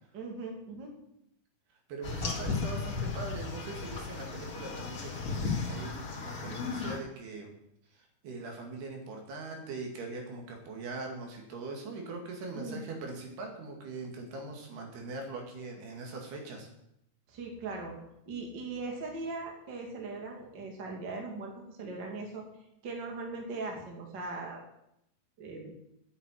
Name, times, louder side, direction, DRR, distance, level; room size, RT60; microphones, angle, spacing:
voice 1, 0.1-0.9 12.5-12.9 17.3-18.0 18.3-22.4 22.8-24.6 25.4-25.7, right 3 dB, 35° right, 1 dB, 2.4 m, -39 dB
voice 2, 1.9-7.5 7.9-16.7, right 3 dB, 80° right, 2 dB, 4.2 m, -41 dB
sound 1, 2.0-7.0, left 4 dB, 35° left, 1.5 m, -35 dB
9.6 x 7.8 x 9.1 m, 0.79 s
omnidirectional pair, 4.5 m